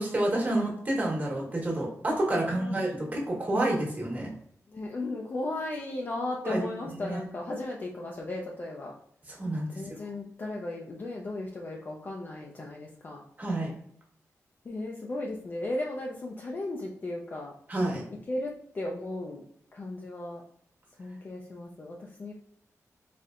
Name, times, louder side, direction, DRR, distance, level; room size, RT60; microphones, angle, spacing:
voice 1, 0.0-4.3 6.4-6.7 7.0-7.2 9.3-9.7 13.4-13.7 17.7-18.0, right 1 dB, 30° right, -2 dB, 1.3 m, -29 dB
voice 2, 2.4-3.3 4.7-8.9 9.7-13.2 14.7-17.5 18.3-19.5 19.7-20.4 21.0-22.3, left 2 dB, 35° left, -1 dB, 0.5 m, -36 dB
4.2 x 3.3 x 2.4 m, 0.67 s
wide cardioid pair, 145°, 6 cm